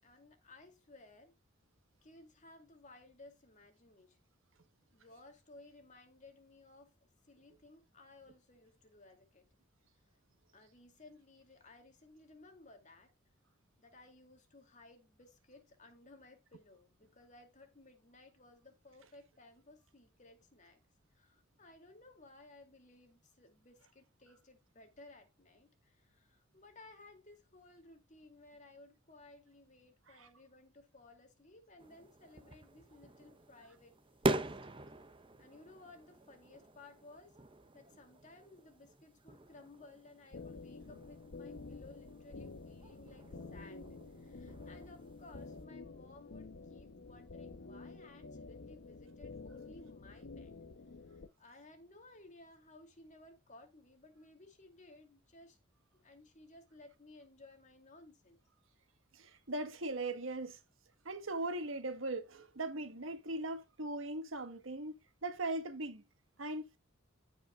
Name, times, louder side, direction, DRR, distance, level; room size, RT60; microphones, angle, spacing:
voice 1, 0.0-1.3 2.0-4.2 4.9-6.9 7.2-9.5 10.5-13.1 13.8-20.8 21.1-34.0 35.4-37.4 37.7-50.5 51.1-55.6 55.9-58.4, left 2 dB, 40° left, 2.4 m, -59 dB
sound 1, 31.8-45.6, right 2 dB, 25° right, 0.7 m, -44 dB
sound 2, 40.3-51.3, left 3 dB, 65° left, 0.8 m, -50 dB
voice 2, 59.1-60.6 61.0-66.0 66.4-66.8, right 2 dB, 80° right, 1.4 m, -39 dB
15.0 x 5.3 x 2.3 m
head